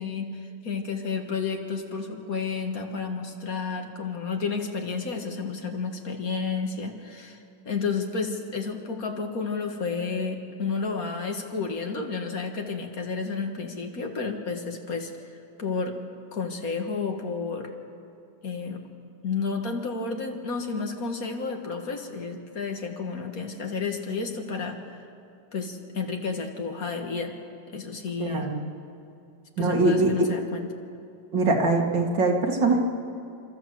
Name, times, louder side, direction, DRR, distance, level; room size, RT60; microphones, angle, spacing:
voice 1, 0.0-15.1 15.6-15.9 16.3-17.7 18.4-18.8 19.2-25.0 25.5-27.3 27.7-28.5 29.6-30.7, left 4 dB, 50° left, 4 dB, 2.1 m, -31 dB
voice 2, 28.2-28.6 29.6-30.1 31.3-32.8, right 3 dB, 85° right, 1 dB, 2.9 m, -22 dB
28.5 x 13.5 x 7.7 m, 2.5 s
omnidirectional pair, 2.0 m